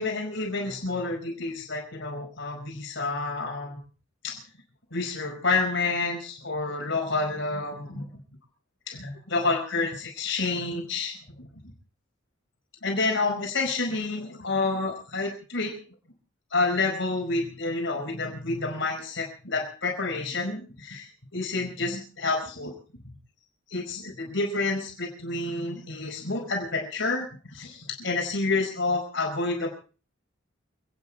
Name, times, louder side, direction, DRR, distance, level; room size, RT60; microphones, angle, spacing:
voice 1, 0.0-3.8 4.2-4.4 4.9-8.0 8.9-11.5 12.8-15.7 16.5-22.7 23.7-27.3 27.5-29.7, left 3 dB, 70° left, 1 dB, 4.8 m, -29 dB
29.0 x 9.7 x 4.1 m, 0.37 s
head